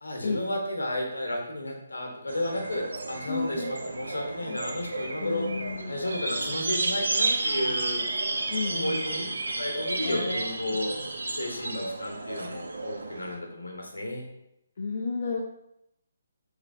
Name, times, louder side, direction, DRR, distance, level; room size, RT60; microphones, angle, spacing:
voice 1, 0.0-5.4 5.9-8.0 8.7-9.2 9.6-10.9 11.3-14.2, left 1 dB, 85° left, 2 dB, 0.9 m, -32 dB
sound 1, 2.3-13.4, right 2 dB, 75° right, 0.4 m, -32 dB
voice 2, 3.3-3.7 4.5-4.6 5.2-6.0 8.5-9.1 10.0-10.8 14.8-15.4, left 4 dB, 55° left, 0 dB, 0.4 m, -32 dB
3.2 x 3.1 x 2.6 m, 0.82 s
figure-of-eight pair, 140°, 0 cm